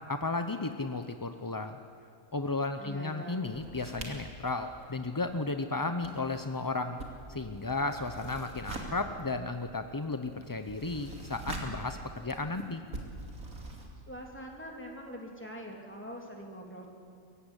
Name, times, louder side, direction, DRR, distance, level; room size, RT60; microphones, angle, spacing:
voice 1, 0.1-1.8 2.3-7.0 7.3-12.8, left 3 dB, 25° left, 8 dB, 0.4 m, -34 dB
voice 2, 2.8-3.4 14.1-16.9, equal, 10° left, 0 dB, 3.2 m, -44 dB
sound 1, 3.4-5.6 5.9-13.9, right 2 dB, 80° right, 3.2 m, -44 dB
24.0 x 15.0 x 9.9 m, 2.3 s
omnidirectional pair, 1.5 m